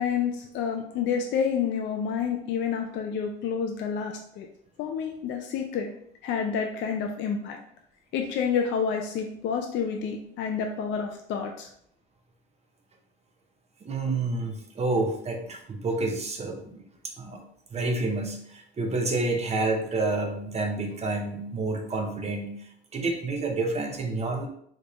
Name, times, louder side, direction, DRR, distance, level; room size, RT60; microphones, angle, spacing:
voice 1, 0.0-4.5 4.8-5.9 6.2-7.6 8.1-11.7, left 7 dB, 65° left, 3 dB, 0.5 m, -29 dB
voice 2, 13.8-16.8 17.2-17.4 17.7-22.5 22.9-24.5, right 2 dB, 30° right, 3 dB, 0.7 m, -29 dB
3.6 x 2.4 x 3.0 m, 0.68 s
supercardioid pair, 85°, 20 cm